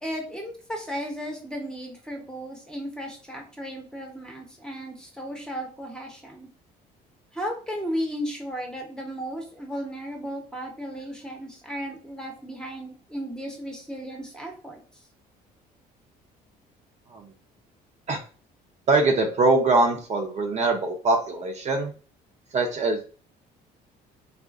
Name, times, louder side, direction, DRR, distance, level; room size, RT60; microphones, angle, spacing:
voice 1, 0.0-6.5 7.3-14.8, equal, 5° left, 1 dB, 0.8 m, -35 dB
voice 2, 18.9-21.9 22.5-23.0, right 3 dB, 40° right, 2 dB, 0.6 m, -22 dB
3.6 x 2.4 x 2.4 m, 0.40 s
cardioid pair, 110°, 17 cm